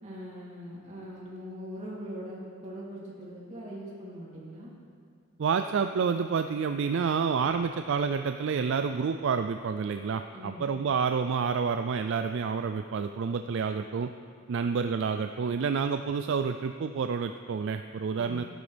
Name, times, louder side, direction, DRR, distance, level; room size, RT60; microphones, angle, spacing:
voice 1, 0.0-4.7 10.3-10.7 18.2-18.4, equal, 35° right, -6 dB, 3.0 m, -41 dB
voice 2, 5.4-14.1 14.5-18.4, right 6 dB, 60° right, 8 dB, 0.3 m, -29 dB
16.5 x 11.0 x 3.4 m, 2.2 s
head